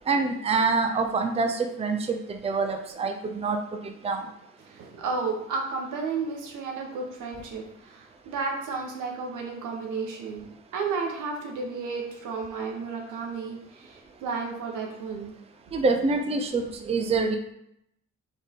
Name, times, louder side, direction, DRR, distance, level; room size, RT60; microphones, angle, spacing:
voice 1, 0.1-3.6 4.0-4.3 15.7-17.4, right 4 dB, 20° right, 5 dB, 0.5 m, -26 dB
voice 2, 4.6-15.3, right 4 dB, 80° right, 1 dB, 1.1 m, -33 dB
4.0 x 3.4 x 3.6 m, 0.75 s
cardioid pair, 90°, 30 cm